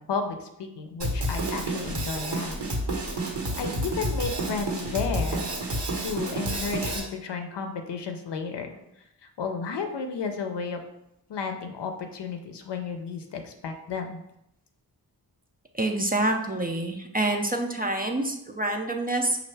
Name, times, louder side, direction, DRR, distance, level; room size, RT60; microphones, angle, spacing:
voice 1, 0.0-2.6 3.6-5.5 6.0-8.7 9.4-10.8 11.3-14.2, left 5 dB, 85° left, 5 dB, 0.5 m, -32 dB
Drum kit, 1.0-7.0, right 1 dB, 80° right, 1.2 m, -29 dB
voice 2, 15.7-19.4, right 2 dB, 25° right, 3 dB, 0.3 m, -27 dB
5.3 x 2.4 x 3.3 m, 0.82 s
wide cardioid pair, 100°, 40 cm